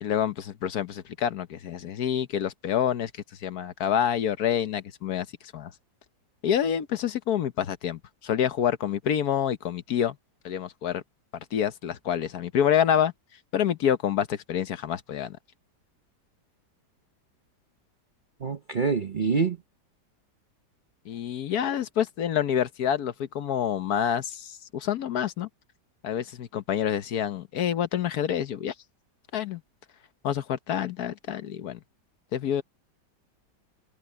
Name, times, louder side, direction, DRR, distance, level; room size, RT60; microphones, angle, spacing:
voice 1, 0.0-3.1 3.4-5.3 5.5-5.7 6.4-10.2 10.4-11.0 11.5-13.1 13.5-15.4 21.0-25.5 26.0-28.7 29.3-29.6 30.2-31.8 32.3-32.6, left 9 dB, 65° left, 1.3 m, -27 dB
voice 2, 18.4-19.6, right 5 dB, 40° right, 0.7 m, -26 dB
omnidirectional pair, 1.8 m